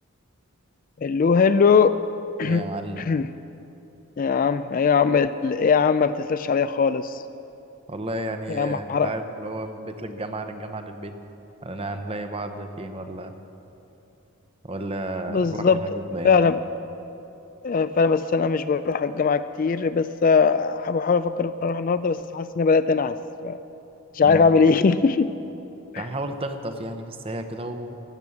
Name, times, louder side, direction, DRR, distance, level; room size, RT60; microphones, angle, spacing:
voice 1, 1.0-2.0 2.4-2.6 3.0-3.3 4.2-7.2 8.5-9.1 15.3-15.8 16.2-16.6 17.6-23.2 23.4-23.6 24.1-25.3 25.9-26.1, left 5 dB, 40° left, 12 dB, 0.3 m, -20 dB
voice 2, 2.4-3.1 7.9-11.1 11.6-13.3 14.6-16.4 24.2-24.5 26.0-28.0, right 1 dB, 25° right, 7 dB, 0.8 m, -32 dB
16.0 x 10.5 x 7.1 m, 2.9 s
head